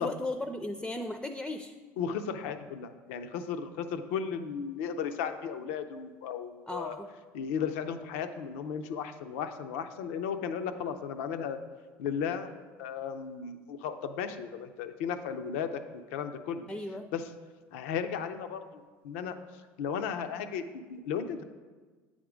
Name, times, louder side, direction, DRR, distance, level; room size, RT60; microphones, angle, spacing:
voice 1, 0.0-1.7 6.7-7.1 16.7-17.1, left 1 dB, 10° left, 7 dB, 0.4 m, -36 dB
voice 2, 2.0-7.0 7.3-11.6 12.0-12.5 12.8-15.8 16.1-16.7 17.1-17.2 17.7-18.6 19.0-19.4 19.8-21.4, left 7 dB, 85° left, 8 dB, 0.5 m, -35 dB
9.0 x 3.6 x 5.0 m, 1.4 s
supercardioid pair, 90°, 7 cm